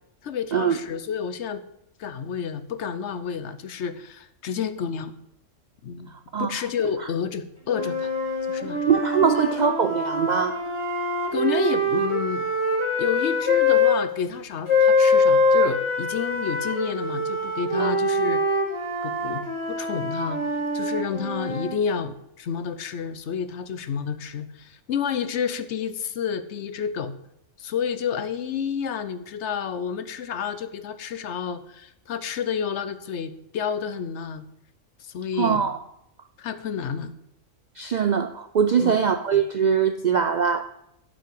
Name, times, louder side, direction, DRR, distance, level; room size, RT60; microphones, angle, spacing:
voice 1, 0.2-1.6 2.0-5.1 5.8-6.1 6.4-8.1 8.5-8.9 9.3-9.5 11.3-12.5 13.0-18.4 19.0-20.4 20.7-27.1 27.6-34.4 35.0-35.7 36.4-37.1 38.8-39.0, left 7 dB, 65° left, 12 dB, 1.0 m, -30 dB
voice 2, 6.3-6.6 8.9-10.6 17.8-18.0 35.4-35.8 37.8-40.7, right 7 dB, 65° right, 10 dB, 0.4 m, -22 dB
sound 1, 7.7-14.0 14.7-21.8, left 2 dB, 20° left, 2.1 m, -24 dB
8.4 x 5.8 x 7.6 m, 0.81 s
omnidirectional pair, 1.3 m